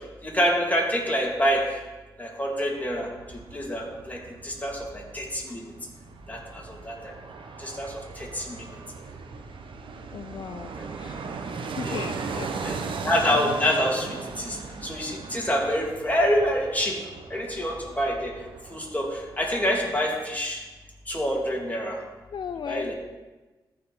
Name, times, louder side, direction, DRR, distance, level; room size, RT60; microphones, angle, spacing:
voice 1, 0.2-1.6 2.2-3.1 3.5-4.2 4.4-5.6 6.3-7.1 7.6-8.6 10.8-10.9 11.8-12.0 12.6-12.8 13.0-14.1 14.4-14.6 14.8-16.9 17.3-18.3 18.7-19.1 19.4-20.6 21.1-22.0 22.7-22.9, equal, 20° left, -2 dB, 2.7 m, -26 dB
Fixed-wing aircraft airplane, 2.8-19.8 20.1-20.2, right 4 dB, 80° right, 0.8 m, -38 dB
voice 2, 10.1-10.7 11.0-11.3 11.8-12.5 22.3-22.9, left 7 dB, 65° left, 9 dB, 0.4 m, -36 dB
14.0 x 5.1 x 4.2 m, 1.2 s
cardioid pair, 45°, 9 cm